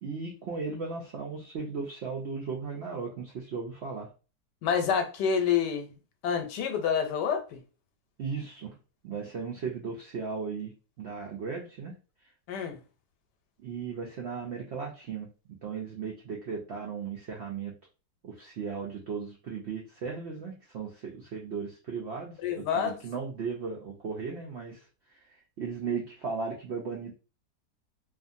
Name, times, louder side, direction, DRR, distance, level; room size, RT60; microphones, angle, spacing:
voice 1, 0.0-4.1 8.2-8.7 9.0-11.9 13.6-17.8 18.2-24.8 25.6-27.2, right 5 dB, 80° right, 0.6 m, -36 dB
voice 2, 4.6-5.9 6.2-7.6 12.5-12.8 22.4-23.0, left 7 dB, 80° left, 1.2 m, -28 dB
2.5 x 2.5 x 2.5 m
omnidirectional pair, 1.8 m